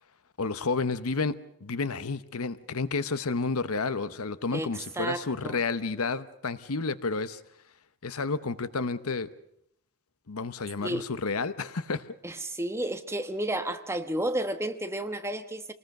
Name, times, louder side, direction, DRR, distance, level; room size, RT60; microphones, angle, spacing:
voice 1, 0.4-1.4 1.6-7.4 8.0-9.3 10.3-12.1, left 4 dB, 80° left, 14 dB, 0.9 m, -30 dB
voice 2, 4.5-5.6 10.8-11.0 12.2-15.7, right 1 dB, 10° right, 8 dB, 1.1 m, -32 dB
26.5 x 19.5 x 6.6 m, 0.75 s
head